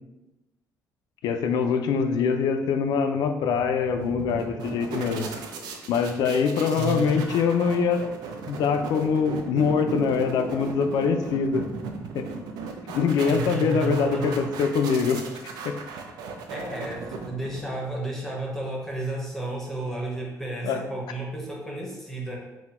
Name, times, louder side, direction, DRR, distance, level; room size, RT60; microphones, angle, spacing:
voice 1, 1.2-5.3 5.9-8.0 8.5-11.7 12.1-12.2 12.9-15.2 15.6-15.7 20.6-20.8, left 6 dB, 80° left, 7 dB, 0.4 m, -24 dB
sound 1, 3.6-17.9, right 4 dB, 85° right, 0.5 m, -37 dB
voice 2, 6.7-7.3 13.2-14.5 16.5-22.4, right 2 dB, 5° left, -2 dB, 0.7 m, -32 dB
4.0 x 2.1 x 4.2 m, 1.0 s
cardioid pair, 155°, 7 cm